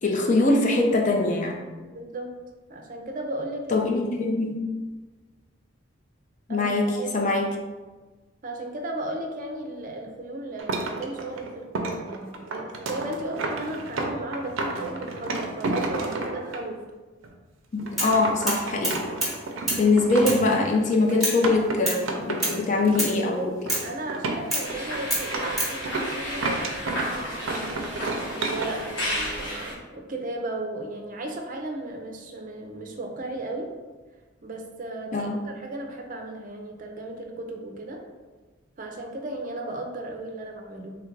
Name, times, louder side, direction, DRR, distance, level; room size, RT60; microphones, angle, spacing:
voice 1, 0.0-1.6 3.7-4.6 6.5-7.5 17.7-19.0 19.8-23.7 35.1-35.4, left 2 dB, 40° left, 1 dB, 0.4 m, -23 dB
voice 2, 1.8-2.3 2.7-3.8 6.5-6.7 6.9-7.3 8.4-16.8 23.8-33.7 34.4-38.0 38.8-41.0, right 2 dB, 45° right, 2 dB, 0.5 m, -35 dB
sound 1, 10.6-16.6 17.2-17.3 17.8-23.2 23.5-23.8 24.1-27.1 27.5-28.7, right 2 dB, 90° right, 0.5 m, -31 dB
sound 2, 18.0-18.2 18.5-19.4 19.7-19.8 20.3-20.4 21.2-21.4 21.9-22.0 22.4-22.6 23.0-23.2 23.7-23.9 24.5-24.7 25.1-25.7, right 1 dB, ahead, 0.9 m, -27 dB
sound 3, 24.6-29.7, equal, 65° left, 0.9 m, -32 dB
3.2 x 2.5 x 4.5 m, 1.3 s
head